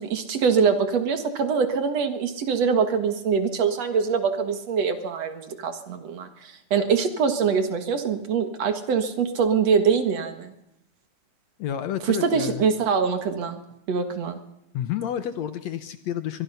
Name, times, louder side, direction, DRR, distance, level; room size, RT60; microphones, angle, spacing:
voice 1, 0.0-10.5 12.0-13.6 13.9-14.4, right 6 dB, 55° right, 8 dB, 2.6 m, -24 dB
voice 2, 11.6-12.6 14.7-16.4, left 10 dB, 65° left, 11 dB, 1.9 m, -30 dB
23.0 x 22.5 x 5.7 m, 0.83 s
omnidirectional pair, 3.7 m